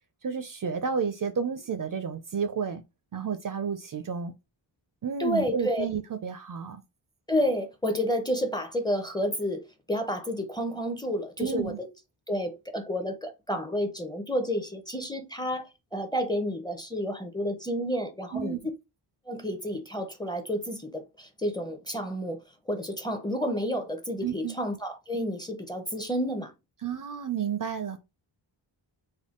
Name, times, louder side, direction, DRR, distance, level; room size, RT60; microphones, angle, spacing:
voice 1, 0.2-2.8 3.1-4.3 5.0-6.8 11.4-11.8 18.3-18.6 24.2-24.6 26.8-28.0, right 6 dB, 45° right, 0.5 m, -31 dB
voice 2, 5.2-5.9 7.3-9.6 9.9-11.9 12.3-18.6 19.3-22.4 22.7-26.5, equal, 10° left, 0.6 m, -30 dB
3.5 x 2.2 x 3.6 m
wide cardioid pair, 110°, 46 cm